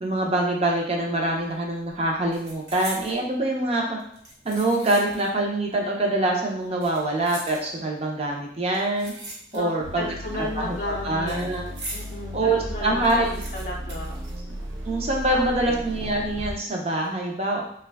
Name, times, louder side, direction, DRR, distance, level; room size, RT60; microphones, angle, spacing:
voice 1, 0.0-4.0 4.4-9.1 9.5-10.1 10.6-10.8 11.0-11.6 12.3-13.3 14.8-17.6, right 2 dB, 35° right, 0 dB, 0.6 m, -24 dB
sound 1, 1.3-1.5 1.8-3.2 4.0-5.4 5.7-5.8 6.6-8.0 8.7-9.9 10.2-12.1 12.5-12.6 12.8-15.0 15.2-15.3 16.0-16.4 16.8-17.1, right 1 dB, 60° right, 1.0 m, -41 dB
voice 2, 9.5-11.4 11.9-14.2 15.2-15.8, left 1 dB, 40° left, -4 dB, 0.5 m, -34 dB
sound 2, 9.8-16.5, equal, 80° right, 0.7 m, -35 dB
3.0 x 2.3 x 3.4 m, 0.69 s
head